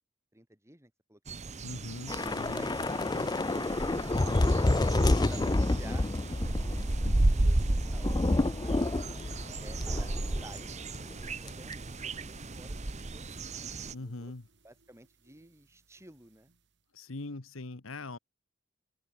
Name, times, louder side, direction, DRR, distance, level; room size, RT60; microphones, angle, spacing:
voice 1, 0.3-1.2 1.4-1.8 2.2-4.4 5.3-8.1 8.4-9.3 9.6-10.1 10.4-10.9 11.2-14.3 14.6-16.5, right 1 dB, 15° right, 7.8 m, -53 dB
sound 1, 1.3-13.9, right 2 dB, 35° right, 1.0 m, -33 dB
voice 2, 1.6-2.7 13.9-14.5 16.9-18.2, left 2 dB, 90° left, 1.4 m, -41 dB
Thunder / Rain, 2.1-10.7 10.9-11.1 11.5-11.7, left 2 dB, 20° left, 0.5 m, -29 dB
sound 2, 2.6-16.8, right 2 dB, 60° right, 3.5 m, -60 dB
open air
head